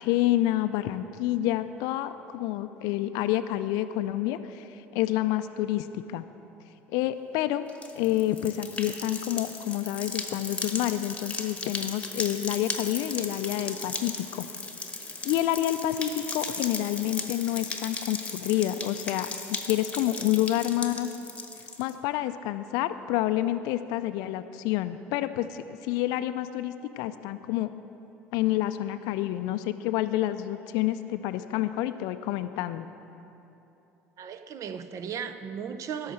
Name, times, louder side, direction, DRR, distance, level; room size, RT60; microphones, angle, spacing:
voice 1, 0.0-6.2 6.9-7.6 7.9-14.5 15.2-21.1 21.8-27.7 28.3-32.9, left 14 dB, 65° left, 11 dB, 0.4 m, -28 dB
sound 1, 7.7-21.9, left 3 dB, 15° left, 1.2 m, -36 dB
voice 2, 34.2-36.1, right 7 dB, 50° right, 11 dB, 0.7 m, -36 dB
11.5 x 6.4 x 7.7 m, 3.0 s
hypercardioid pair, 70°, 7 cm